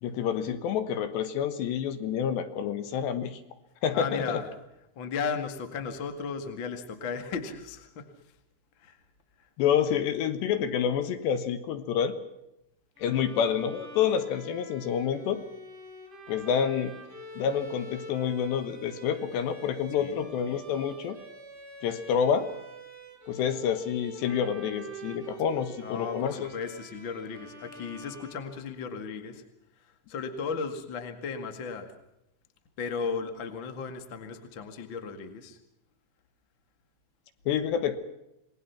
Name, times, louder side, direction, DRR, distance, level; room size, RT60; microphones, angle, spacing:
voice 1, 0.0-3.4 3.8-4.4 9.6-12.1 13.0-15.4 16.3-16.9 17.4-21.2 21.8-22.5 23.3-26.5 37.5-38.0, left 8 dB, 70° left, 10 dB, 3.2 m, -28 dB
voice 2, 3.9-4.5 4.9-8.1 8.8-9.0 9.4-9.5 20.0-20.3 25.8-29.4 30.1-31.9 32.8-35.6, left 5 dB, 50° left, 8 dB, 1.4 m, -35 dB
Bowed string instrument, 13.0-28.9, right 1 dB, 30° right, 4.5 m, -46 dB
28.0 x 20.0 x 5.8 m, 0.86 s
omnidirectional pair, 5.7 m